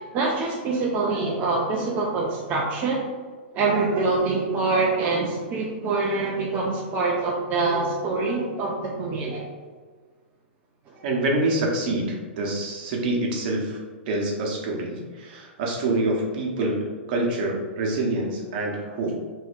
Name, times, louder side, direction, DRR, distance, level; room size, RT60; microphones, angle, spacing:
voice 1, 0.0-3.0 3.5-9.5 10.9-11.0, right 3 dB, 30° right, -3 dB, 0.5 m, -25 dB
voice 2, 11.0-13.8 14.1-16.8 17.1-19.1, right 2 dB, 55° right, -1 dB, 0.9 m, -26 dB
4.2 x 2.7 x 2.5 m, 1.5 s
hypercardioid pair, 135°, 6 cm